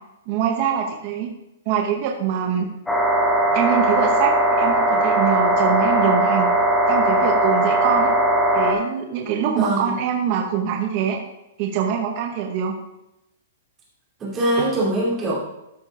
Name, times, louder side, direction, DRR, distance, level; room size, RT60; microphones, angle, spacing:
voice 1, 0.3-1.3 1.7-2.7 3.5-6.5 6.9-8.1 8.5-11.2 11.6-12.8, right 8 dB, 30° right, 2 dB, 0.8 m, -24 dB
sound 1, 2.9-8.7, right 1 dB, 5° left, 1.3 m, -19 dB
voice 2, 9.5-9.9 14.2-15.4, right 1 dB, 15° right, -6 dB, 2.5 m, -23 dB
13.0 x 5.0 x 3.6 m, 0.89 s
hypercardioid pair, 175°, 0 cm